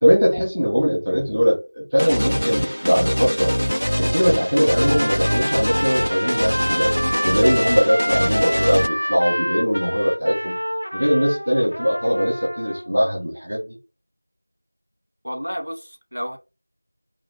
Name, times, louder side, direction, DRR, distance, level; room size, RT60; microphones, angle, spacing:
voice 1, 0.0-3.5 4.0-10.6 10.9-13.8, equal, 5° right, 0.4 m, -20 dB
sound 1, 2.0-8.9, equal, 75° left, 0.3 m, -23 dB
Trumpet, 4.7-12.9, equal, 40° right, 1.0 m, -27 dB
voice 2, 15.2-16.4, equal, 75° right, 1.4 m, -31 dB
4.1 x 2.8 x 4.4 m
figure-of-eight pair, 180°, 0 cm